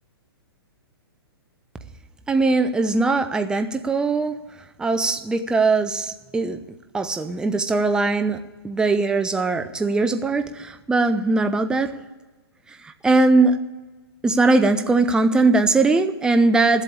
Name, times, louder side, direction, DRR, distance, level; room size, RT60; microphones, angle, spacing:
voice 1, 2.3-4.4 4.8-6.6 6.9-8.4 8.6-12.0 12.8-13.6 14.2-16.8, right 3 dB, 5° right, 8 dB, 0.6 m, -20 dB
13.0 x 8.1 x 8.6 m, 1.2 s
hypercardioid pair, 130°, 13 cm